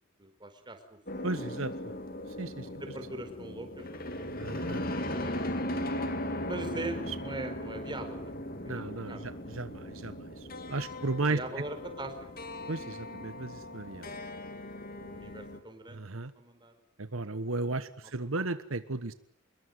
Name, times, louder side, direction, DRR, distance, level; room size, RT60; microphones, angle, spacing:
voice 1, 0.2-1.0 2.7-4.0 6.5-8.3 8.6-9.3 11.3-12.3 14.9-16.0 16.4-16.7 18.4-18.5, right 1 dB, 20° right, 7 dB, 4.7 m, -41 dB
sound 1, 1.1-15.6, left 1 dB, 45° left, 2.9 m, -38 dB
voice 2, 1.2-1.7 2.4-2.7 4.4-4.8 7.1-7.2 8.6-11.4 12.7-14.2 15.9-16.3 17.0-19.1, right 3 dB, 75° right, 12 dB, 1.2 m, -35 dB
26.5 x 22.0 x 9.4 m, 0.63 s
head